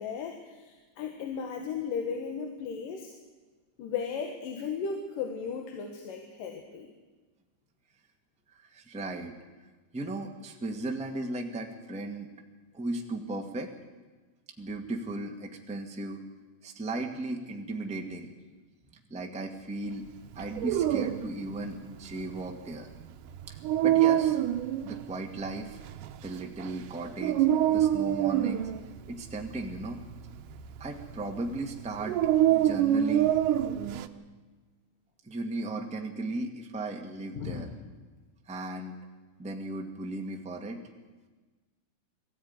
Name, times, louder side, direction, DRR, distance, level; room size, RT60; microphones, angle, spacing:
voice 1, 0.0-3.1 3.8-6.9 37.4-37.7, left 6 dB, 80° left, 3 dB, 3.1 m, -35 dB
voice 2, 8.5-9.4 9.9-12.3 12.7-13.7 14.6-16.2 16.6-18.3 19.1-20.0 20.3-22.9 23.5-23.6 23.8-24.4 24.8-25.8 26.2-28.7 29.1-30.0 30.8-33.3 35.2-37.7 38.4-39.0 39.4-40.8, right 2 dB, 5° right, 2 dB, 0.9 m, -36 dB
Dog, 20.3-34.1, right 11 dB, 75° right, 2.4 m, -27 dB
21.5 x 15.0 x 9.7 m, 1.3 s
omnidirectional pair, 3.8 m